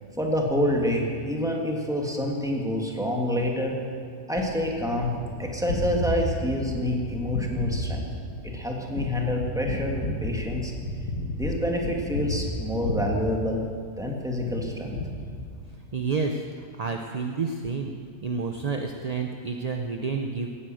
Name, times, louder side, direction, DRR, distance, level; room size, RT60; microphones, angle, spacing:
voice 1, 0.2-3.8 4.3-5.1 5.4-8.1 8.4-10.7 11.4-13.6 14.0-15.0, left 1 dB, ahead, 0 dB, 1.8 m, -27 dB
Gunshot gunfire, 4.4-14.0 14.5-15.9, left 1 dB, 85° left, 2.0 m, -32 dB
voice 2, 15.9-16.4 16.8-17.9 18.2-20.5, right 4 dB, 40° right, 4 dB, 0.6 m, -29 dB
16.5 x 9.9 x 7.6 m, 2.1 s
omnidirectional pair, 1.5 m